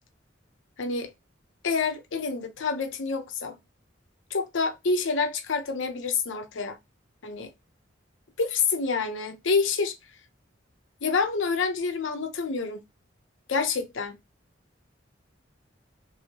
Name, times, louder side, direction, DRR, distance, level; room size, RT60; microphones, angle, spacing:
voice 1, 0.8-1.1 1.6-3.6 4.3-6.8 7.2-7.5 8.4-10.0 11.0-12.8 13.5-14.2, left 4 dB, 75° left, 0.6 m, -27 dB
2.8 x 2.7 x 2.8 m
head